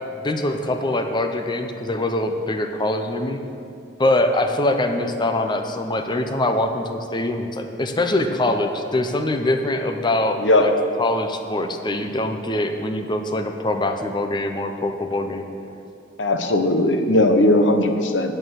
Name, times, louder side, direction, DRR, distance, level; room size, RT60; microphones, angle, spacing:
voice 1, 0.1-3.4 4.0-10.7 11.0-15.5, left 1 dB, 25° left, 6 dB, 0.7 m, -23 dB
voice 2, 10.4-10.9 16.2-18.3, left 1 dB, 80° left, 6 dB, 0.9 m, -18 dB
9.0 x 8.8 x 6.5 m, 2.6 s
head